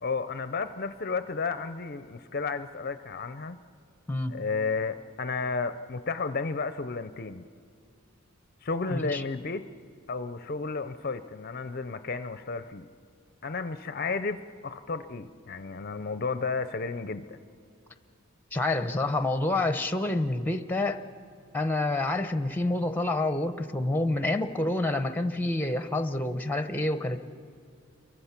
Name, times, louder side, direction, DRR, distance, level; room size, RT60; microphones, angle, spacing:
voice 1, 0.0-3.6 4.3-7.4 8.6-9.6 10.1-12.9 13.4-17.4, left 4 dB, 40° left, 11 dB, 0.5 m, -32 dB
voice 2, 8.9-9.2 18.5-21.0 21.5-27.2, left 2 dB, 10° left, 9 dB, 0.7 m, -28 dB
29.0 x 23.5 x 5.9 m, 2.4 s
head